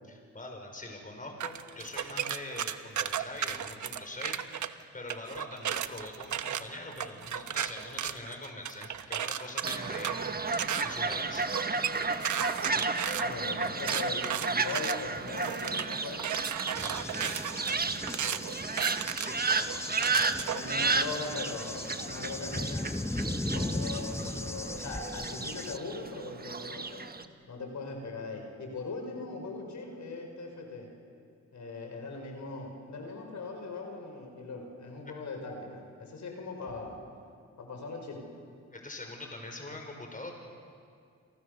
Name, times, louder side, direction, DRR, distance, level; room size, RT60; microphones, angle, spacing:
voice 1, 0.1-11.5 16.8-17.5 19.0-20.0 35.1-35.2 38.7-40.3, left 2 dB, 30° left, 3 dB, 5.5 m, -43 dB
sound 1, 1.4-4.7 5.1-20.7, right 9 dB, 80° right, 1.1 m, -34 dB
Fowl, 9.6-27.2, right 4 dB, 30° right, 1.4 m, -33 dB
voice 2, 13.2-16.2 18.2-18.4 20.4-27.0 27.5-30.9 31.5-37.0 37.6-38.2, left 3 dB, 75° left, 3 dB, 5.5 m, -40 dB
Cricket / Thunder, 16.7-25.8, left 1 dB, 10° left, 1.0 m, -37 dB
29.0 x 27.5 x 6.8 m, 2.3 s
cardioid pair, 75°, 29 cm